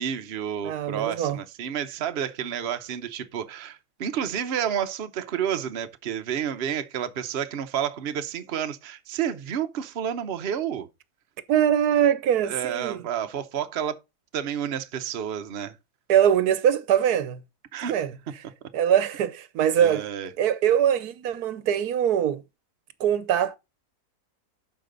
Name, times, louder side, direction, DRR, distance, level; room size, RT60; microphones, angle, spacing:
voice 1, 0.0-10.9 12.4-14.0 14.3-15.8 17.7-17.9 19.8-20.3, right 9 dB, 50° right, 0.9 m, -30 dB
voice 2, 0.6-1.4 11.5-13.0 16.1-17.4 17.9-18.1 18.7-20.0 20.4-22.4 23.0-23.6, right 9 dB, 75° right, 1.2 m, -22 dB
12.0 x 4.9 x 3.8 m
omnidirectional pair, 1.7 m